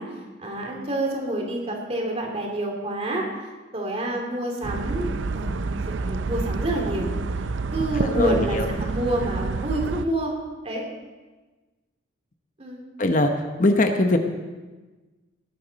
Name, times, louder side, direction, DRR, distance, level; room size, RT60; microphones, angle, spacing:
voice 1, 0.0-3.3 3.7-5.5 5.9-7.1 7.7-10.3 10.6-10.8 12.6-12.8, right 1 dB, 35° right, 0 dB, 2.7 m, -28 dB
sound 1, 4.6-10.0, right 3 dB, 80° right, 0.5 m, -28 dB
voice 2, 8.0-8.7 13.0-13.3 13.6-14.2, left 2 dB, 45° left, 6 dB, 0.9 m, -21 dB
19.0 x 12.0 x 4.1 m, 1.3 s
head